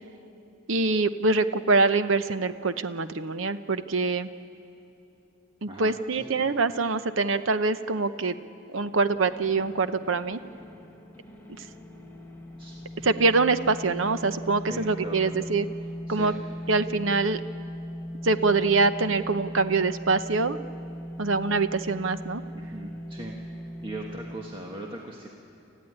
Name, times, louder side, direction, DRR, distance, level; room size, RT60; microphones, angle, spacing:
voice 1, 0.7-4.3 5.6-8.4 8.7-10.4 13.0-15.7 16.1-16.3 16.7-17.4 18.2-20.6 21.2-22.4, right 3 dB, 75° right, 11 dB, 0.8 m, -24 dB
voice 2, 5.7-6.4 12.6-12.8 14.7-15.5 16.1-16.4 22.5-23.4 23.8-25.3, right 1 dB, 25° right, -1 dB, 1.5 m, -39 dB
sound 1, 8.9-24.4, equal, 10° left, 1.6 m, -39 dB
28.0 x 14.5 x 9.9 m, 2.9 s
head